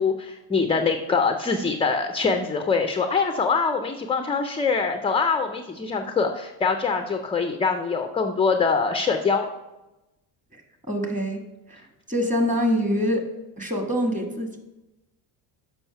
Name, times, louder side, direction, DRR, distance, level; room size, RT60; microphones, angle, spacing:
voice 1, 0.0-9.5, left 5 dB, 15° left, 6 dB, 0.3 m, -24 dB
voice 2, 10.9-11.4 11.7-11.8 12.1-13.2 13.6-14.6, equal, 15° right, 4 dB, 1.4 m, -25 dB
7.1 x 5.4 x 5.6 m, 1.0 s
cardioid pair, 110°, 48 cm